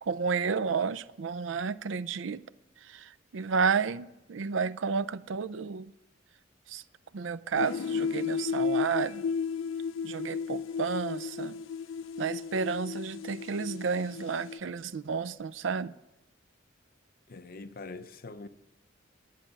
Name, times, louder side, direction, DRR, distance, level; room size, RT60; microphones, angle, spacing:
voice 1, 0.0-2.4 2.9-5.9 6.7-6.8 7.1-9.2 10.0-11.6 12.2-15.9, right 5 dB, 75° right, 0.5 m, -31 dB
sound 1, 7.5-14.6, left 6 dB, 85° left, 0.4 m, -33 dB
voice 2, 17.3-18.5, left 3 dB, 50° left, 0.7 m, -43 dB
11.5 x 7.4 x 9.8 m
head